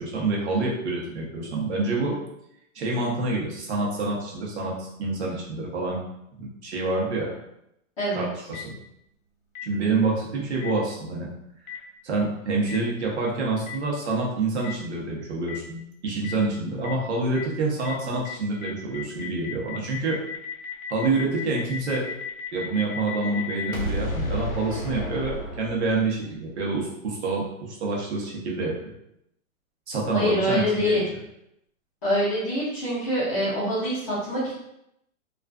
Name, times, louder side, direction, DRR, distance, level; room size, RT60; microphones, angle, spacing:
voice 1, 0.0-2.1 2.7-6.0 6.3-7.3 8.1-8.7 9.6-11.3 11.6-11.7 12.0-20.2 20.9-22.1 22.5-28.7 29.9-31.1, right 3 dB, 55° right, -3 dB, 0.8 m, -27 dB
voice 2, 8.0-8.3 30.1-31.1 32.0-34.6, left 1 dB, 25° left, -8 dB, 0.6 m, -25 dB
Boom, 8.5-8.6 9.5-9.6 10.6-10.7 11.7-11.8 12.7-12.8 13.7-13.8 14.6-14.7 15.5-15.6 16.2-16.3 16.8-16.9 17.3-17.4 17.8-17.9 18.2-18.3 18.6-26.2, left 3 dB, 80° left, 0.8 m, -33 dB
2.4 x 2.3 x 2.2 m, 0.80 s
hypercardioid pair, 160°, 41 cm